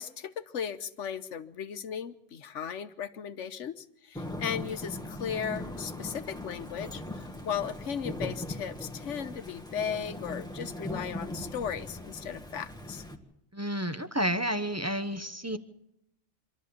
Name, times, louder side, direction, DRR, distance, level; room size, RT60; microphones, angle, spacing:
voice 1, 0.0-13.0, left 7 dB, 75° left, 12 dB, 1.3 m, -36 dB
Thunder / Rain, 4.1-13.2, left 1 dB, 5° left, 1.6 m, -39 dB
voice 2, 13.5-15.6, equal, 15° right, 10 dB, 0.8 m, -30 dB
26.0 x 12.5 x 8.5 m, 0.81 s
omnidirectional pair, 1.2 m